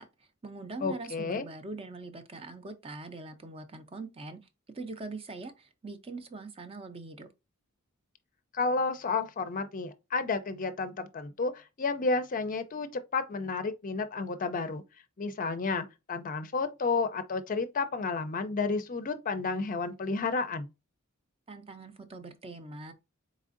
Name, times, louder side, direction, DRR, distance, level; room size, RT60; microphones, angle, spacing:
voice 1, 0.0-4.4 4.7-7.3 21.5-22.9, right 3 dB, 25° right, 0.6 m, -42 dB
voice 2, 0.8-1.4 8.5-14.8 15.2-20.7, left 4 dB, 40° left, 0.5 m, -31 dB
4.1 x 3.6 x 2.5 m
head